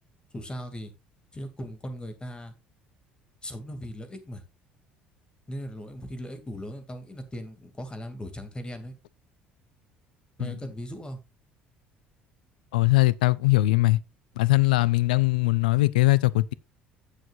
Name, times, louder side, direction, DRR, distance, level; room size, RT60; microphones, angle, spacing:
voice 1, 0.3-0.9 1.3-2.5 3.4-4.4 5.5-9.0 10.4-11.2, equal, 20° left, 2.5 m, -38 dB
voice 2, 12.7-14.0 14.4-16.5, left 20 dB, 70° left, 0.5 m, -21 dB
16.5 x 6.6 x 2.5 m
figure-of-eight pair, 55°, 5 cm